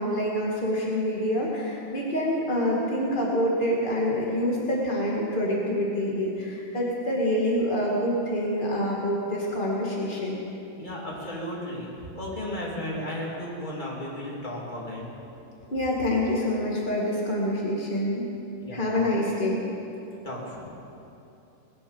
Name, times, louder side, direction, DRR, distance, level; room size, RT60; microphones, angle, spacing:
voice 1, 0.0-10.4 15.7-18.2 18.7-19.6, equal, 65° left, -4 dB, 0.5 m, -26 dB
voice 2, 10.7-15.1 18.6-19.1 20.2-20.7, left 1 dB, 15° left, -5 dB, 2.4 m, -35 dB
20.5 x 9.4 x 7.1 m, 2.9 s
omnidirectional pair, 4.7 m